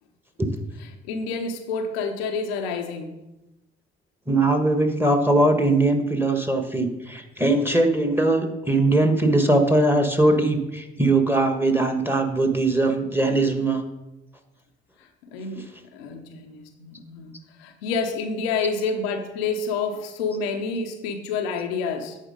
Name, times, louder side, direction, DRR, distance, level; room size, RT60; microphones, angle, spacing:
voice 1, 0.8-3.2 15.3-17.3 17.6-22.2, left 4 dB, 85° left, 4 dB, 0.7 m, -28 dB
voice 2, 4.3-13.8, right 2 dB, 5° right, 5 dB, 1.4 m, -20 dB
8.9 x 4.2 x 5.1 m, 0.97 s
hypercardioid pair, 45°, 29 cm